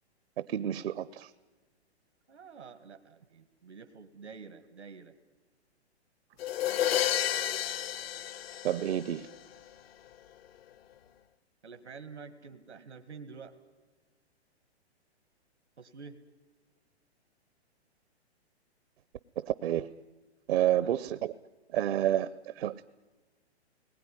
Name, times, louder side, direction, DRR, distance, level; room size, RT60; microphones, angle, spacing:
voice 1, 0.4-1.3 8.6-9.3 19.4-19.9 20.5-21.3 21.7-22.9, right 11 dB, 60° right, 0.8 m, -29 dB
voice 2, 2.3-5.1 11.6-13.5 15.8-16.2 20.8-20.9 22.0-22.2, right 5 dB, 85° right, 1.8 m, -48 dB
sound 1, 6.4-9.3, left 11 dB, 60° left, 0.9 m, -31 dB
29.5 x 20.0 x 10.0 m
hypercardioid pair, 130°, 33 cm